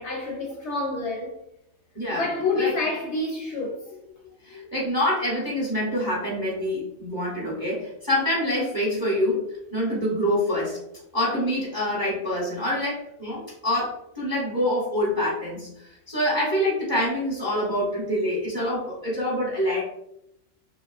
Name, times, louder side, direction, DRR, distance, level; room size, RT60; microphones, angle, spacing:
voice 1, 0.0-1.4 2.1-4.7, left 3 dB, 65° left, 0.8 m, -29 dB
voice 2, 1.9-2.3 2.5-2.7 4.4-9.4 9.7-10.8 11.1-19.8, left 1 dB, 20° right, 0.7 m, -26 dB
2.7 x 2.3 x 2.3 m
omnidirectional pair, 1.4 m